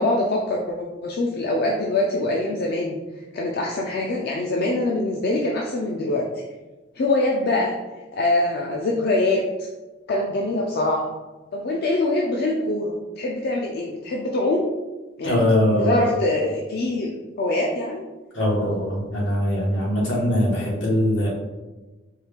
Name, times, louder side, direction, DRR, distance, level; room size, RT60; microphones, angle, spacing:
voice 1, 0.0-3.0 3.3-6.2 6.9-7.7 8.1-9.7 10.1-11.1 11.5-14.7 15.2-15.4 15.7-18.0, left 2 dB, 55° left, -1 dB, 0.4 m, -24 dB
voice 2, 15.2-16.0 18.3-21.3, left 1 dB, 75° left, -4 dB, 1.4 m, -21 dB
4.5 x 2.4 x 3.4 m, 1.2 s
head